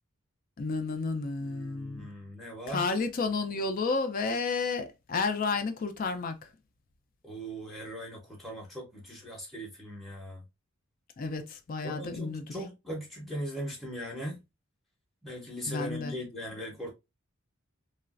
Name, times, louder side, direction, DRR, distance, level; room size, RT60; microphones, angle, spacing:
voice 1, 0.6-2.1 2.7-6.5 11.2-12.5 15.7-16.1, left 4 dB, 40° left, 0.4 m, -31 dB
voice 2, 1.4-2.8 7.2-10.4 11.8-14.4 15.2-16.9, equal, ahead, 0.7 m, -39 dB
3.0 x 2.4 x 2.3 m
head